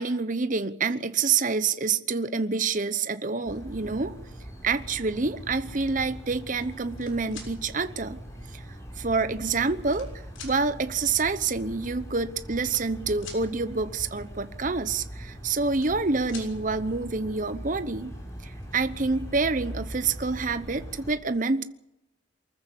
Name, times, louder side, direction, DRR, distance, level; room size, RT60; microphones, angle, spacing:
voice 1, 0.0-4.2 4.6-8.2 8.5-8.6 9.0-10.1 10.4-18.1 18.4-21.6, right 4 dB, 40° right, 0.9 m, -27 dB
sound 1, 3.4-21.1, equal, 15° left, 6.4 m, -41 dB
sound 2, 6.7-7.5 8.5-8.6 9.4-10.1 10.3-10.6 11.7-11.8 12.0-12.2 12.6-13.4 15.3-16.0 16.3-16.5 18.0-18.1 18.4-18.8, left 5 dB, 85° left, 6.7 m, -45 dB
24.0 x 14.5 x 8.3 m
head